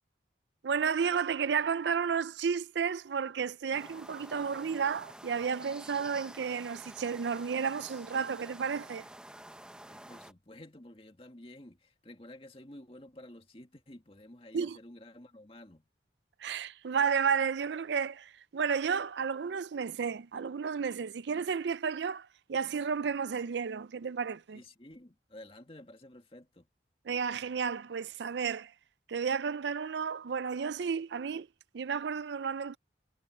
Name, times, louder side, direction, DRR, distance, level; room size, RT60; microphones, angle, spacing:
voice 1, 0.6-9.1 14.5-14.8 16.4-24.6 27.1-28.7 29.1-31.5 31.7-32.8, right 6 dB, 75° right, 0.4 m, -32 dB
sound 1, 3.7-10.3, right 1 dB, 5° right, 0.8 m, -49 dB
voice 2, 9.9-15.9 24.5-26.7, left 1 dB, 30° left, 2.0 m, -51 dB
head